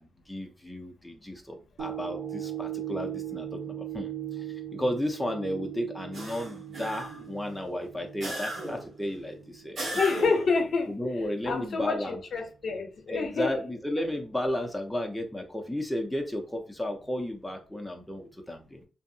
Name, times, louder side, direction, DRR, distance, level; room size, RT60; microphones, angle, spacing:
voice 1, 0.0-9.8 10.9-12.2 13.1-18.9, left 1 dB, ahead, 0.4 m, -33 dB
sound 1, 1.8-10.2 10.7-10.8, right 11 dB, 70° right, 0.4 m, -39 dB
sound 2, 6.1-7.3 8.2-8.9 9.8-10.6, right 1 dB, 55° right, 1.6 m, -35 dB
voice 2, 9.9-11.0 11.5-13.6, left 4 dB, 55° left, 0.6 m, -28 dB
2.6 x 2.5 x 2.6 m
wide cardioid pair, 160°, 0 cm